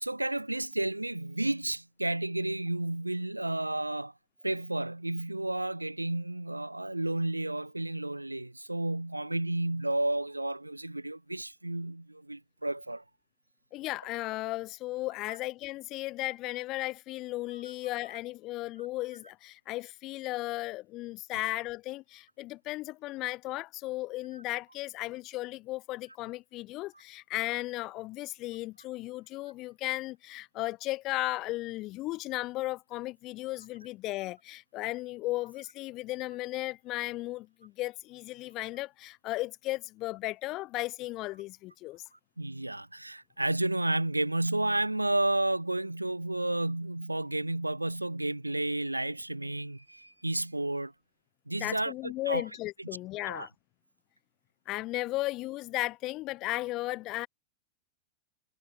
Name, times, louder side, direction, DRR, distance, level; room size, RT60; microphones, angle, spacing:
voice 1, 0.0-4.1 4.4-13.0 42.4-50.9 51.5-52.4 52.8-52.9 53.3-53.5, right 1 dB, 85° right, 0.7 m, -31 dB
voice 2, 13.7-42.0 51.6-53.5 54.7-57.3, left 18 dB, 40° left, 0.5 m, -35 dB
figure-of-eight pair, 90°, 0 cm